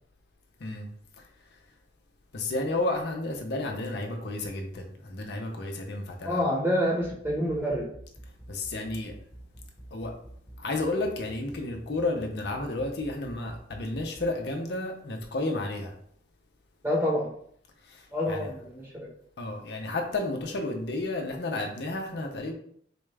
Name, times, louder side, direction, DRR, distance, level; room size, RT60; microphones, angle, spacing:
voice 1, 2.3-6.4 8.5-9.1 9.9-10.1 10.6-15.9 17.9-18.5 19.4-22.5, left 2 dB, 65° left, 2 dB, 0.6 m, -32 dB
voice 2, 6.2-7.9 16.8-17.3 18.1-18.9, equal, 10° right, -3 dB, 1.0 m, -27 dB
sound 1, 7.0-14.3, right 1 dB, 15° left, 0.8 m, -47 dB
4.2 x 2.3 x 3.2 m, 0.64 s
head